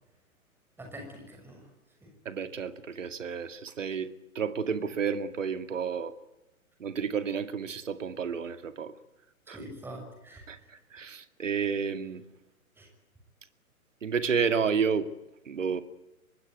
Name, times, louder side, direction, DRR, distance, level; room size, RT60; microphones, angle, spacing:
voice 1, 0.8-1.7 2.0-2.1 9.5-10.4 12.8-12.9, right 1 dB, 5° right, 2 dB, 6.2 m, -44 dB
voice 2, 2.3-6.1 6.8-8.9 9.5-9.6 10.5-12.2 14.0-15.1 15.5-15.8, right 6 dB, 60° right, 11 dB, 2.3 m, -31 dB
25.0 x 20.5 x 9.6 m, 0.95 s
figure-of-eight pair, 125°, 43 cm